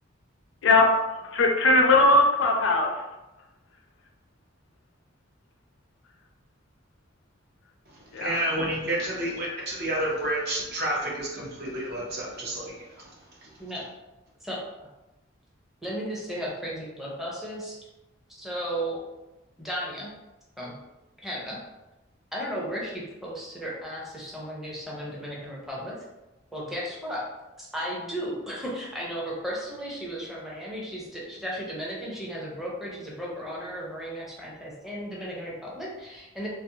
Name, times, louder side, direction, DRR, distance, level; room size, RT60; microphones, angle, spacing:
voice 1, 1.2-2.9 8.1-8.4, left 2 dB, 70° left, 3 dB, 0.4 m, -19 dB
voice 2, 7.9-13.1 13.4-13.5, right 1 dB, 55° right, -3 dB, 0.7 m, -30 dB
voice 3, 14.4-14.9 15.8-17.8 18.3-19.0 19.6-20.1 20.6-20.7 21.2-21.6 22.3-25.9 26.5-27.2 27.6-36.5, equal, ahead, -5 dB, 0.5 m, -35 dB
2.5 x 2.0 x 2.6 m, 1.0 s
head